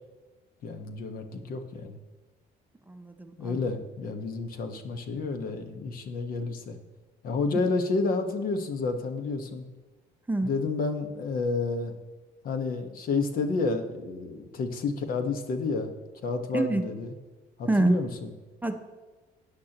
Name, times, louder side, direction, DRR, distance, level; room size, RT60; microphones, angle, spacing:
voice 1, 0.6-2.0 3.4-6.8 7.2-9.7 10.4-11.9 12.4-15.9 16.2-17.1 17.6-18.3, left 3 dB, 60° left, 7 dB, 1.3 m, -30 dB
voice 2, 2.9-3.7 10.3-10.6 16.5-16.9 17.7-18.0 18.6-18.8, right 2 dB, 10° right, 6 dB, 0.7 m, -26 dB
16.0 x 9.6 x 3.0 m, 1.3 s
cardioid pair, 110°, 17 cm